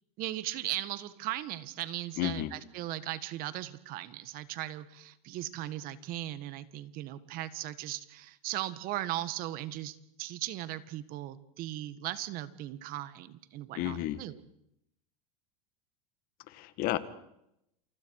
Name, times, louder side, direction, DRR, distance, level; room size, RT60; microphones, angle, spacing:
voice 1, 0.2-14.4, right 14 dB, 45° right, 14 dB, 1.7 m, -38 dB
voice 2, 2.2-2.5 13.8-14.2 16.5-17.0, left 15 dB, 45° left, 12 dB, 1.9 m, -32 dB
28.5 x 28.5 x 4.9 m, 0.81 s
supercardioid pair, 130°, 20 cm